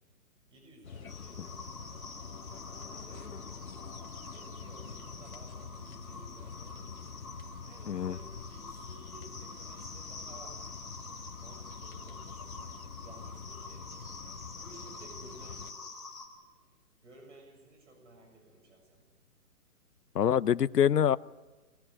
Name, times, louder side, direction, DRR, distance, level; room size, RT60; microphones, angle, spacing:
voice 1, 0.5-1.6 2.8-3.3 4.3-7.1 7.6-10.6 11.3-13.9 14.6-15.9 17.0-19.0, right 1 dB, 50° right, 3 dB, 7.1 m, -55 dB
sound 1, 0.8-15.7, left 6 dB, 65° left, 1.6 m, -46 dB
sound 2, 1.1-16.3, left 3 dB, ahead, 2.5 m, -47 dB
voice 2, 7.9-8.2 20.1-21.2, left 9 dB, 85° left, 18 dB, 0.9 m, -25 dB
24.0 x 18.5 x 9.8 m, 1.2 s
hypercardioid pair, 180°, 46 cm